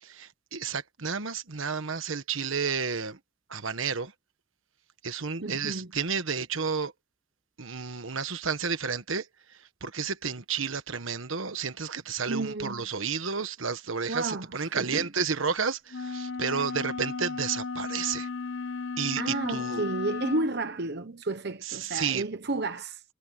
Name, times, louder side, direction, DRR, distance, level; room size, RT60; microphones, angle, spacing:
voice 1, 0.0-3.2 3.5-4.1 5.0-6.9 7.6-18.3 19.0-19.8 21.6-22.2, right 6 dB, 75° right, 1.4 m, -31 dB
voice 2, 5.4-5.9 12.3-12.8 14.1-15.1 16.5-16.7 19.2-23.0, right 2 dB, 55° right, 1.0 m, -32 dB
sound 1, 15.9-20.5, left 4 dB, 65° left, 0.8 m, -34 dB
head